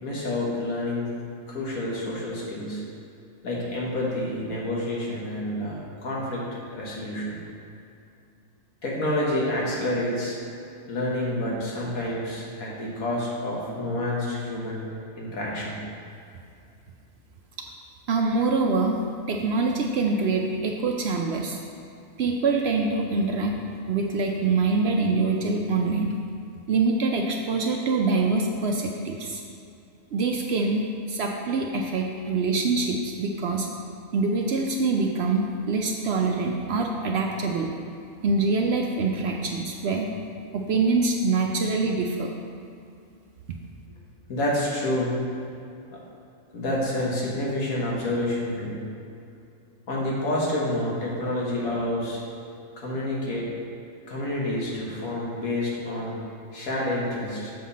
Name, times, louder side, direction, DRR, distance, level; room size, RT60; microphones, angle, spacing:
voice 1, 0.0-1.1 1.5-2.8 3.4-6.4 6.7-7.4 8.8-10.4 10.9-14.8 15.2-15.8 44.3-45.4 46.5-48.8 49.9-52.2 52.8-53.5 54.1-56.2 56.5-57.5, left 1 dB, 90° left, -4 dB, 1.8 m, -28 dB
voice 2, 18.1-19.0 19.3-21.6 22.2-23.6 23.9-26.1 26.7-29.4 30.1-30.8 31.1-33.7 34.1-37.7 38.2-40.1 40.5-42.3, right 3 dB, 65° right, 1 dB, 0.7 m, -25 dB
6.7 x 5.7 x 4.1 m, 2.6 s
omnidirectional pair, 1.4 m